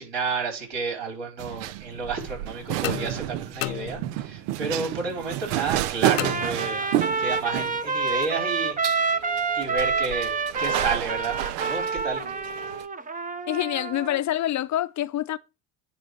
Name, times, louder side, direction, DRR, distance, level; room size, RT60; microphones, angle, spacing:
voice 1, 0.0-6.8 7.2-8.8 9.5-12.2, right 4 dB, 60° right, 5.0 m, -31 dB
sound 1, 1.4-12.9, right 14 dB, 85° right, 0.7 m, -31 dB
sound 2, 2.8-4.5 6.2-7.1, left 18 dB, 70° left, 0.9 m, -34 dB
Trumpet, 6.1-14.2, right 4 dB, 15° right, 0.7 m, -28 dB
voice 2, 13.5-15.4, left 13 dB, 35° left, 0.6 m, -26 dB
9.8 x 3.4 x 6.6 m
supercardioid pair, 100°, 47 cm